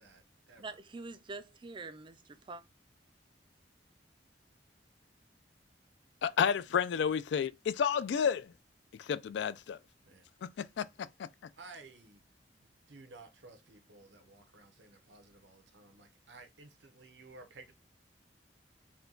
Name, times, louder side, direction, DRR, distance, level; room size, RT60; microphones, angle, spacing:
voice 1, 0.0-0.8 10.0-10.2 11.6-12.2 12.6-17.7, right 3 dB, 80° right, 0.8 m, -55 dB
voice 2, 0.6-2.6, right 3 dB, 25° right, 0.4 m, -45 dB
voice 3, 6.2-8.5 9.0-9.8 10.4-11.3, left 7 dB, 70° left, 0.3 m, -31 dB
4.4 x 2.3 x 3.7 m
head